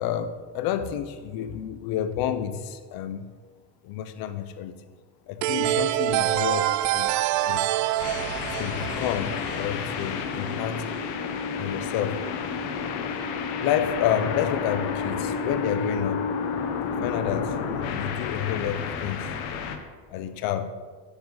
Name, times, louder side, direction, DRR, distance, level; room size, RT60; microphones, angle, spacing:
voice 1, 0.0-3.3 3.8-4.8 5.3-7.2 7.5-7.7 8.6-10.9 11.6-12.2 13.6-16.3 17.0-19.3 20.1-20.7, left 9 dB, 60° left, 11 dB, 1.0 m, -29 dB
sound 1, 5.4-10.0, right 14 dB, 45° right, 0.5 m, -26 dB
sound 2, 7.3-18.3, left 4 dB, 30° left, 1.1 m, -48 dB
sound 3, 8.0-19.8, left 6 dB, 85° left, 1.4 m, -30 dB
12.5 x 10.0 x 4.2 m, 1.5 s
cardioid pair, 140°, 40 cm